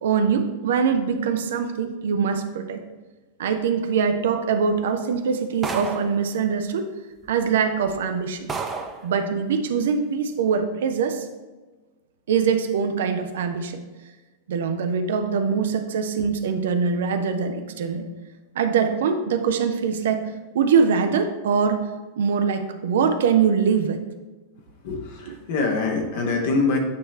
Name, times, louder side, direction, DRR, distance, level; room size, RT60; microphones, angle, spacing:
voice 1, 0.0-2.8 3.4-6.9 7.3-8.5 9.0-11.3 12.3-13.8 14.5-18.1 18.6-20.3 20.5-21.8 22.2-24.0 25.2-25.4, right 6 dB, 60° right, 7 dB, 0.5 m, -23 dB
sound 1, 5.6-6.2 7.2-7.3 7.9-8.0 8.5-9.0, right 4 dB, 20° right, 0.7 m, -30 dB
voice 2, 24.8-26.8, left 3 dB, 55° left, 2 dB, 1.2 m, -24 dB
8.5 x 3.2 x 4.3 m, 1.2 s
figure-of-eight pair, 90°, 0 cm